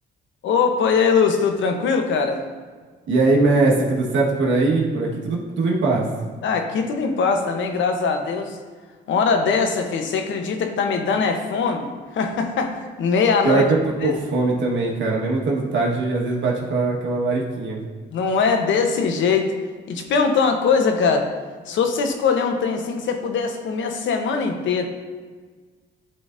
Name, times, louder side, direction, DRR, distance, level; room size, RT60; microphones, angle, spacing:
voice 1, 0.4-2.4 6.4-8.6 9.1-13.6 14.0-14.2 18.1-19.5 19.9-21.3 21.7-24.9, left 5 dB, 70° left, 5 dB, 0.9 m, -21 dB
voice 2, 3.1-6.1 13.4-17.8, right 3 dB, 70° right, -2 dB, 1.4 m, -21 dB
11.0 x 3.9 x 2.6 m, 1.5 s
cardioid pair, 90°, 20 cm